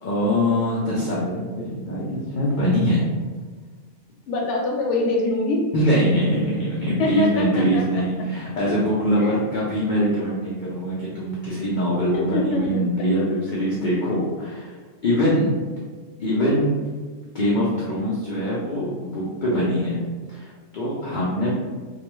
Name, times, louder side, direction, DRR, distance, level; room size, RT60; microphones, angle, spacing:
voice 1, 0.0-3.0 5.7-14.7 15.0-15.5 16.2-16.8 17.3-20.0 20.3-21.5, equal, 85° left, -6 dB, 0.4 m, -23 dB
voice 2, 4.3-5.6 7.0-7.8 9.2-9.3 12.1-12.8, left 2 dB, 70° left, -1 dB, 0.8 m, -24 dB
2.3 x 2.1 x 2.9 m, 1.4 s
omnidirectional pair, 1.4 m